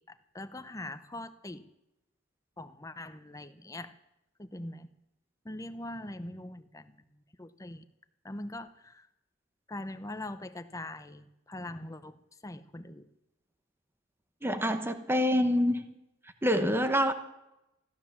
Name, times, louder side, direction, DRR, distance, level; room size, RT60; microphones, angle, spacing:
voice 1, 0.0-1.6 2.6-4.0 4.4-4.9 5.4-7.8 8.2-9.1 9.7-13.1, left 1 dB, 15° left, 11 dB, 0.7 m, -42 dB
voice 2, 14.4-15.9 16.4-17.1, equal, 10° right, 9 dB, 1.0 m, -26 dB
15.0 x 12.5 x 7.3 m, 0.90 s
head